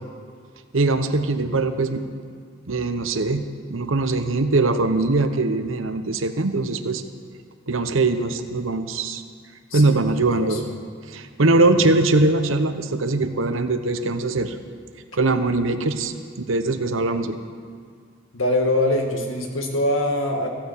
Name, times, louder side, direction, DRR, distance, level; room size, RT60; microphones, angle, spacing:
voice 1, 0.7-2.0 2.7-7.0 7.7-9.2 9.7-10.6 11.1-14.5 15.1-17.4, right 2 dB, 80° right, 9 dB, 0.9 m, -21 dB
voice 2, 9.7-10.6 18.3-20.5, left 1 dB, 80° left, 2 dB, 2.0 m, -23 dB
15.0 x 8.8 x 8.2 m, 2.1 s
head